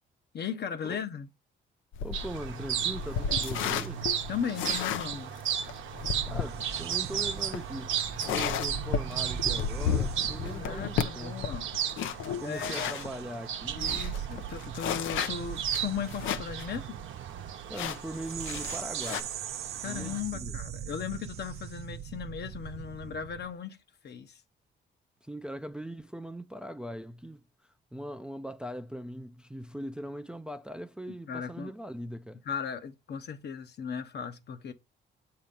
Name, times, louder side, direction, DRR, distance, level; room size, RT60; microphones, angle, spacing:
voice 1, 0.3-1.3 4.3-5.3 10.6-11.7 12.4-12.9 13.7-17.0 19.8-23.8 24.0-24.4 31.1-31.7 32.4-34.7, left 7 dB, 55° left, 0.9 m, -37 dB
sound 1, 1.9-13.1 13.5-13.6 13.8-16.7 17.0-17.1 17.7-19.2, left 8 dB, 80° left, 0.6 m, -34 dB
voice 2, 2.0-4.1 6.3-8.0 8.3-11.5 12.4-14.1 17.7-19.3 19.8-20.5 25.2-27.4 27.9-32.4, right 1 dB, 5° right, 0.4 m, -40 dB
sound 2, 2.1-20.2, right 9 dB, 75° right, 0.8 m, -35 dB
sound 3, 6.0-23.5, right 10 dB, 55° right, 0.5 m, -41 dB
7.4 x 2.9 x 5.2 m
cardioid pair, 90°, 20 cm